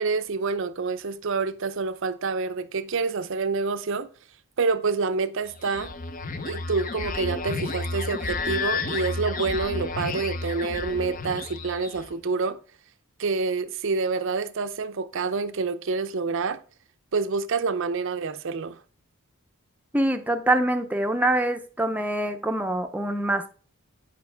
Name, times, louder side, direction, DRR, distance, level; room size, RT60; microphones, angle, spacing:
voice 1, 0.0-4.1 4.6-5.9 6.4-12.6 13.2-16.6 17.1-18.8, right 4 dB, 60° right, 0.5 m, -27 dB
sound 1, 5.5-12.1, left 3 dB, 40° left, 0.6 m, -31 dB
voice 2, 19.9-23.5, right 1 dB, 5° right, 0.6 m, -24 dB
9.3 x 5.2 x 3.4 m
head